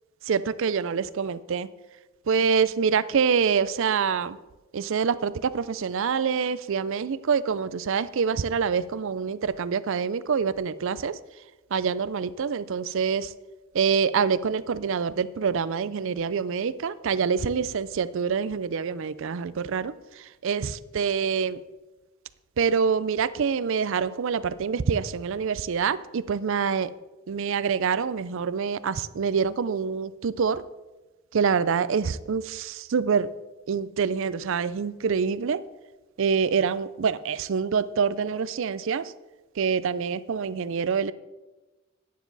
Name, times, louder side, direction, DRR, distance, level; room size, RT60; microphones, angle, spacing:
voice 1, 0.3-1.7 2.3-4.4 4.7-11.1 11.7-13.3 13.7-19.9 20.4-21.6 22.6-26.9 27.3-30.6 31.3-33.3 33.7-35.6 36.2-39.0 39.6-41.1, right 6 dB, 65° right, 17 dB, 0.4 m, -26 dB
12.0 x 9.4 x 4.0 m, 1.1 s
head